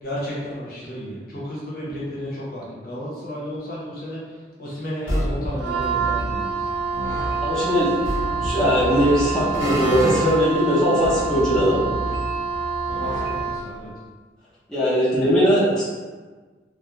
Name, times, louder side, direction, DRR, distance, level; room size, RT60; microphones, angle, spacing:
voice 1, 0.0-4.2 4.6-6.6 12.9-13.9, equal, 55° left, -7 dB, 0.8 m, -32 dB
sound 1, 5.1-6.3 6.6-10.4 11.0-13.5, equal, 90° left, 0.8 m, -29 dB
Wind instrument woodwind instrument, 5.6-13.8, right 5 dB, 75° right, 0.3 m, -27 dB
voice 2, 7.4-7.9 8.4-11.8 14.7-15.8, equal, 5° left, -11 dB, 0.6 m, -19 dB
2.3 x 2.1 x 2.9 m, 1.4 s
head